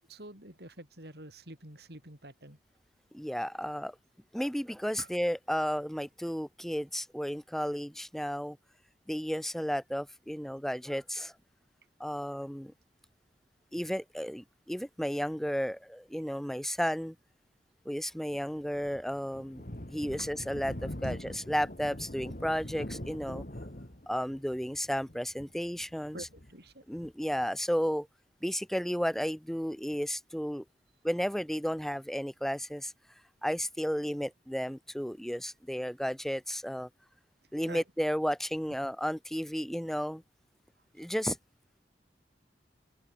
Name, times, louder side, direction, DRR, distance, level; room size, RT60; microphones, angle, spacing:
voice 1, 0.1-2.6 5.0-5.1 20.2-20.3 26.1-26.8 37.7-37.8, right 1 dB, 65° right, 7.5 m, -47 dB
voice 2, 3.1-3.9 4.3-8.6 9.1-11.3 12.0-12.7 13.7-17.1 17.9-19.6 19.9-23.4 24.1-26.3 26.9-28.1 28.4-30.6 31.0-32.9 33.4-36.9 37.5-40.2 41.0-41.4, equal, ahead, 0.8 m, -33 dB
Thunder, 18.3-27.4, left 1 dB, 50° left, 3.1 m, -43 dB
open air
head